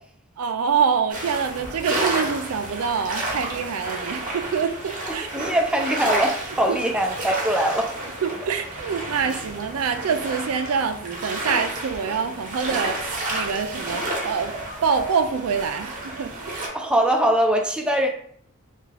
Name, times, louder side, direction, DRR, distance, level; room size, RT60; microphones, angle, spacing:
voice 1, 0.4-5.3 6.7-6.8 8.2-14.5 14.8-16.6, right 6 dB, 80° right, 8 dB, 0.4 m, -25 dB
sound 1, 1.1-16.7, right 2 dB, 40° right, 0.8 m, -31 dB
voice 2, 5.3-7.9 9.3-9.4 16.7-18.1, right 1 dB, 5° right, 1 dB, 0.4 m, -22 dB
3.5 x 2.3 x 3.2 m, 0.63 s
head